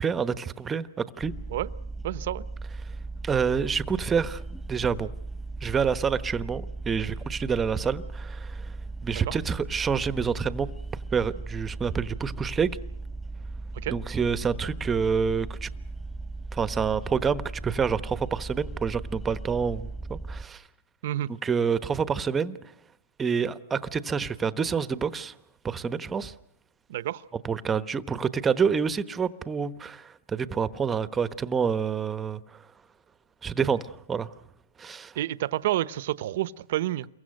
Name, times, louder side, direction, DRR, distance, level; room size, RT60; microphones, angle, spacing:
voice 1, 0.0-1.3 3.2-4.4 4.7-5.1 5.6-8.7 9.0-10.7 11.1-12.8 13.9-15.7 16.5-20.6 21.4-22.6 23.2-25.3 25.6-26.3 27.4-32.6 33.4-34.3 34.8-35.1, right 6 dB, 15° right, 1.1 m, -27 dB
sound 1, 1.2-20.4, right 3 dB, 5° left, 1.6 m, -37 dB
voice 2, 2.0-2.4 9.1-9.4 13.7-14.0 21.0-21.3 26.9-27.2 35.2-37.1, right 14 dB, 65° right, 0.9 m, -29 dB
28.5 x 23.0 x 6.6 m
hypercardioid pair, 140°, 0 cm